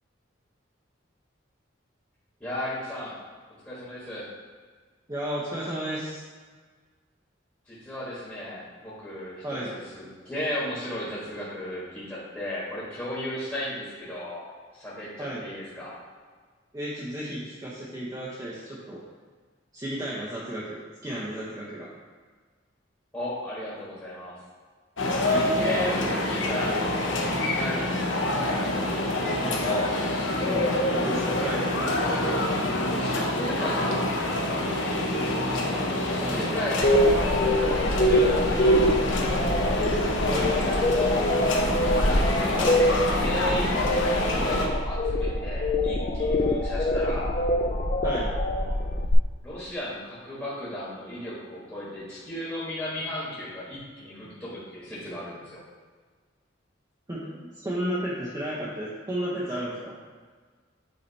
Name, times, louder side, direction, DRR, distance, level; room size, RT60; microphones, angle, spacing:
voice 1, 2.4-3.1 3.6-4.3 7.7-15.9 23.1-24.4 25.0-29.9 32.8-34.1 36.0-38.8 42.0-47.3 49.4-55.6, left 1 dB, 10° left, -10 dB, 1.5 m, -35 dB
voice 2, 5.1-6.2 9.4-9.7 15.2-15.4 16.7-19.0 19.7-21.9 25.2-25.5 30.4-31.7 36.2-36.4 40.3-40.5 48.0-48.3 57.1-59.9, right 1 dB, 20° right, -8 dB, 0.8 m, -33 dB
sound 1, 25.0-44.7, left 1 dB, 70° left, 0.8 m, -26 dB
sound 2, 36.8-49.1, left 1 dB, 40° left, 0.4 m, -24 dB
8.5 x 2.9 x 4.0 m, 1.5 s
head